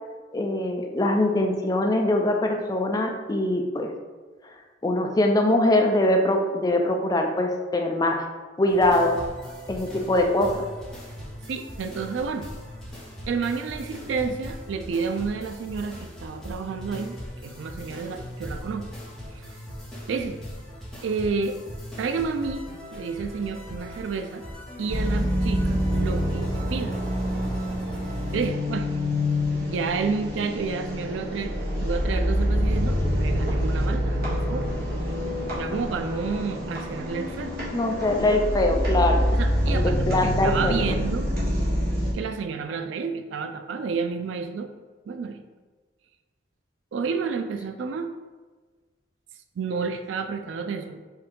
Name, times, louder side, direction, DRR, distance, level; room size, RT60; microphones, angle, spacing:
voice 1, 0.3-3.9 4.8-8.2 8.6-9.2 9.7-10.7 37.7-39.2 39.7-40.9, left 1 dB, 20° left, 3 dB, 0.4 m, -23 dB
sound 1, 8.7-28.5, equal, ahead, 1.2 m, -40 dB
voice 2, 11.5-12.5 13.3-18.9 19.3-19.4 20.1-20.4 21.0-21.6 22.0-24.4 24.8-27.0 28.3-28.9 29.6-34.7 35.6-37.5 38.1-38.3 39.3-41.3 42.1-44.7 45.1-45.4 46.9-48.1 49.6-51.0, right 5 dB, 90° right, 8 dB, 0.4 m, -30 dB
sound 2, 24.9-42.1, equal, 55° right, 1.3 m, -26 dB
4.5 x 2.7 x 3.7 m, 1.4 s
head